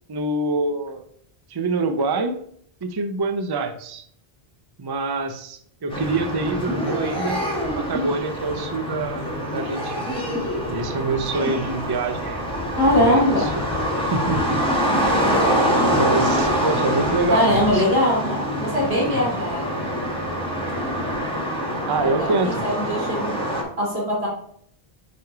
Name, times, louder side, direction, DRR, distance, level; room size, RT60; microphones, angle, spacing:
voice 1, 0.1-1.0 1.5-2.4 2.8-4.1 4.8-10.1 10.7-12.6 12.9-13.6 14.1-14.6 15.9-18.0 19.1-19.4 21.9-22.6, right 3 dB, 30° right, 8 dB, 0.5 m, -26 dB
sound 1, 5.9-23.6, equal, 5° left, 1.5 m, -25 dB
voice 2, 12.8-13.5 17.3-19.8 22.0-23.3 23.8-24.3, left 1 dB, 90° right, -5 dB, 3.1 m, -21 dB
5.1 x 4.7 x 4.7 m, 0.65 s
omnidirectional pair, 1.0 m